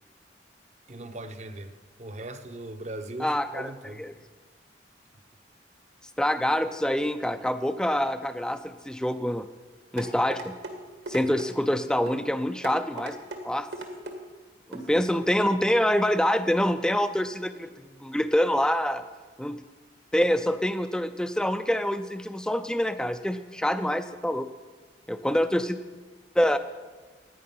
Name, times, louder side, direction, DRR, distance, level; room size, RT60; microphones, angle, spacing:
voice 1, 0.9-4.1, right 1 dB, 40° right, 9 dB, 0.8 m, -39 dB
voice 2, 3.2-3.7 4.0-4.1 6.2-9.5 9.9-10.5 11.1-13.2 13.4-13.7 14.7-19.0 19.4-19.6 20.1-24.5 25.1-25.8 26.4-26.6, equal, 5° left, 10 dB, 0.4 m, -26 dB
sound 1, 10.0-10.7 11.1-11.5 12.1-12.2 12.6-13.4 13.7-14.2 14.7-14.9 15.3-15.4, right 2 dB, 70° right, 1.7 m, -37 dB
14.0 x 9.7 x 5.6 m, 1.4 s
head